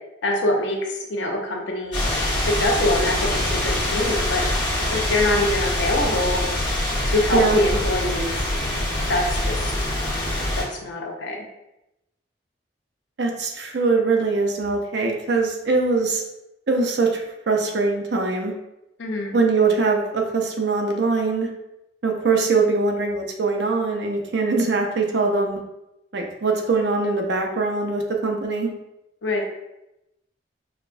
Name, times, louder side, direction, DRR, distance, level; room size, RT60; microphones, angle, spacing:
voice 1, 0.2-2.0 2.4-4.4 4.9-6.4 7.1-8.3 9.1-9.7 10.6-11.4 19.0-19.3 29.2-29.4, left 2 dB, 85° left, 1 dB, 0.7 m, -24 dB
sound 1, 1.9-10.6, left 1 dB, 70° left, 1.4 m, -24 dB
voice 2, 13.2-16.2 16.7-18.5 19.3-21.5 22.0-25.6 26.1-28.7, right 3 dB, 65° right, 2 dB, 0.6 m, -22 dB
5.0 x 2.2 x 2.5 m, 0.91 s
head